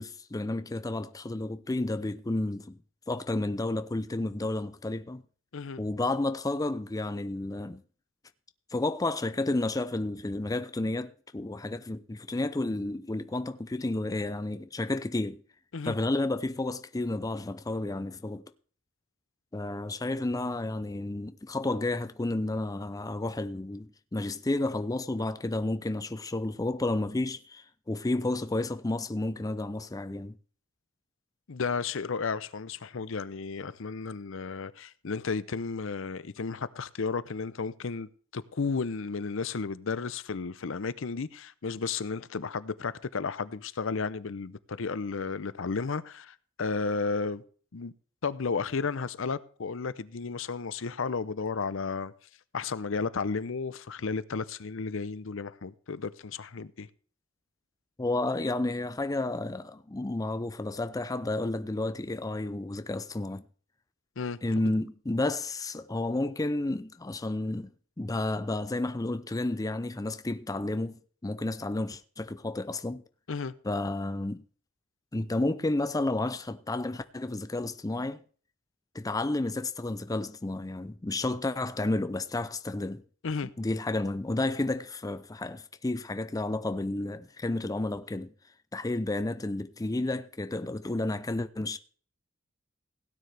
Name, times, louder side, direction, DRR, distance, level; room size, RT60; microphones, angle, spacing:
voice 1, 0.0-2.8 3.1-5.2 5.8-7.8 8.7-15.4 15.8-18.4 19.5-30.4 58.0-63.4 64.4-67.7 68.0-73.0 73.6-74.4 75.1-78.2 78.9-83.0 83.6-88.3 88.7-91.8, left 2 dB, 15° left, 0.5 m, -31 dB
voice 2, 31.5-47.4 47.7-47.9 48.2-52.1 52.5-56.9 64.2-64.4 73.3-73.5 83.2-83.5, left 4 dB, 65° left, 0.6 m, -33 dB
17.0 x 9.3 x 3.4 m
head